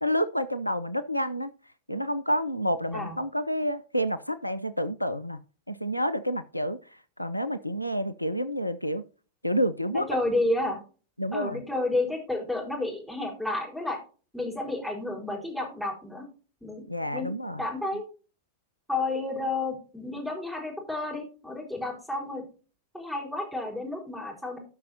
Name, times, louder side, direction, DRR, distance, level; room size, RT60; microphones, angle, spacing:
voice 1, 0.0-1.5 1.9-5.4 5.7-9.0 9.4-10.1 11.2-11.6 16.9-17.7, equal, 90° left, 0.6 m, -29 dB
voice 2, 9.9-10.8 11.3-14.0 14.3-16.3 16.6-16.8 17.1-17.3 17.6-18.0 18.9-22.4 22.9-24.6, left 2 dB, ahead, 4.5 m, -31 dB
17.5 x 5.9 x 2.7 m
figure-of-eight pair, 90°, 0 cm